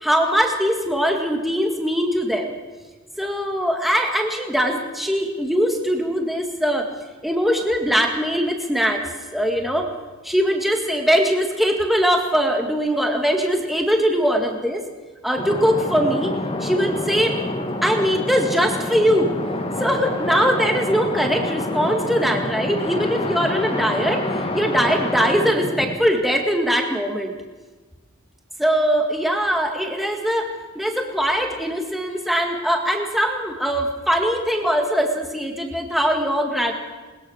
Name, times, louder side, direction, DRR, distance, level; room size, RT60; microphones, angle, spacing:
voice 1, 0.0-2.5 3.2-6.9 7.2-9.0 9.3-9.9 10.2-14.8 15.2-16.3 16.6-17.4 17.8-19.4 19.8-24.2 24.5-27.3 28.6-30.5 30.8-36.7, equal, ahead, 2 dB, 1.9 m, -21 dB
sound 1, 15.4-25.9, left 1 dB, 25° left, 2.3 m, -27 dB
21.0 x 20.5 x 6.4 m, 1.3 s
head